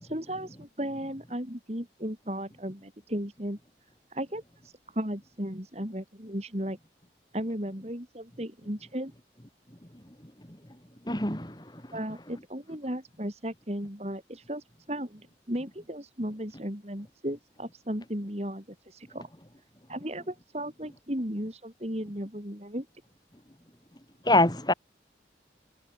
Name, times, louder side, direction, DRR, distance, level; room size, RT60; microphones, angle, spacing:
voice 1, 0.0-3.6 4.1-6.8 7.3-9.1 11.9-19.3 19.9-22.9, equal, 35° right, 4.8 m, -35 dB
voice 2, 11.1-11.6 24.3-24.7, left 2 dB, 25° left, 3.1 m, -23 dB
head